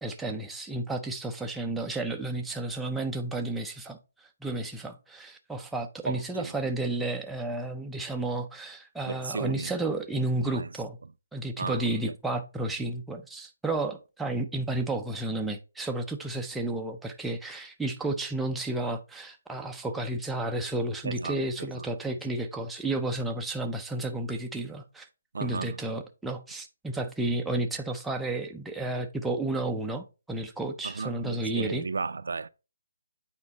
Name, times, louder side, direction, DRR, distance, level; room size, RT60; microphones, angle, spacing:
voice 1, 0.0-4.0 4.4-11.0 11.3-25.1 25.4-31.8, right 2 dB, ahead, 0.4 m, -32 dB
voice 2, 6.1-6.5 9.1-9.7 10.4-10.7 11.6-12.1 21.0-22.2 25.3-25.8 30.8-32.5, right 4 dB, 80° right, 0.5 m, -35 dB
8.4 x 4.4 x 4.0 m
hypercardioid pair, 175°, 0 cm